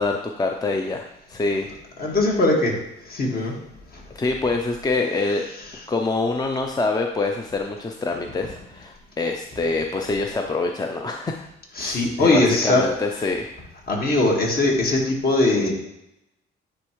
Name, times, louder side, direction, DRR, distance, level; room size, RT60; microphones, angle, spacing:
voice 1, 0.0-1.7 3.3-3.5 4.1-5.4 5.9-11.5 11.8-13.5, left 3 dB, 20° left, 3 dB, 0.5 m, -25 dB
voice 2, 2.0-2.7 3.1-3.5 3.9-4.0 11.8-12.8 13.9-15.7, left 2 dB, 50° left, -1 dB, 1.7 m, -20 dB
9.7 x 3.4 x 3.1 m, 0.83 s
cardioid pair, 90°, 20 cm